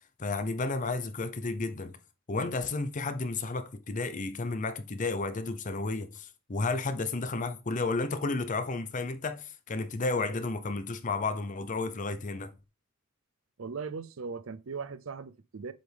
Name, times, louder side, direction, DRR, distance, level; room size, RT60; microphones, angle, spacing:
voice 1, 0.2-2.0 2.3-12.5, left 3 dB, 40° left, 0.6 m, -32 dB
voice 2, 13.6-15.7, right 5 dB, 75° right, 0.6 m, -38 dB
7.7 x 5.1 x 3.4 m
head